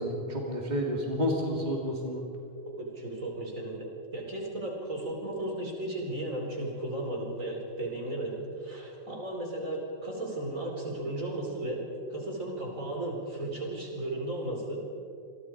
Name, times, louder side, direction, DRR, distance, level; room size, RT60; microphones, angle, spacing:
voice 1, 0.0-2.3, equal, 35° right, -1 dB, 3.1 m, -30 dB
voice 2, 2.8-11.8 12.1-14.8, right 1 dB, 80° right, -1 dB, 5.1 m, -35 dB
28.5 x 22.0 x 4.9 m, 2.5 s
omnidirectional pair, 1.4 m